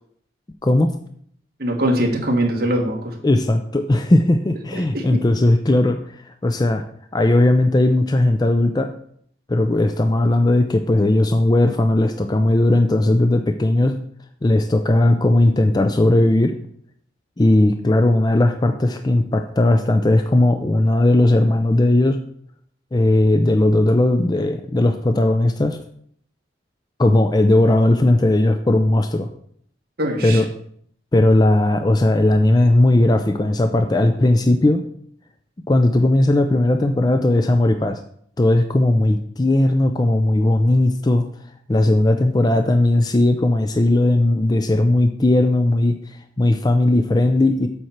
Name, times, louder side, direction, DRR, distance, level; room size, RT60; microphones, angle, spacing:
voice 1, 1.6-3.1 4.7-5.2 30.0-30.4, right 1 dB, 55° right, 0 dB, 1.6 m, -22 dB
voice 2, 3.2-6.0 6.2-6.8 7.1-8.9 9.5-14.0 14.4-16.5 17.4-22.2 22.9-25.8 27.0-29.3 30.2-30.5 31.1-34.8 35.7-38.0 38.4-41.2 41.7-47.7, left 1 dB, 20° left, 6 dB, 0.4 m, -17 dB
7.8 x 4.3 x 5.8 m, 0.64 s
head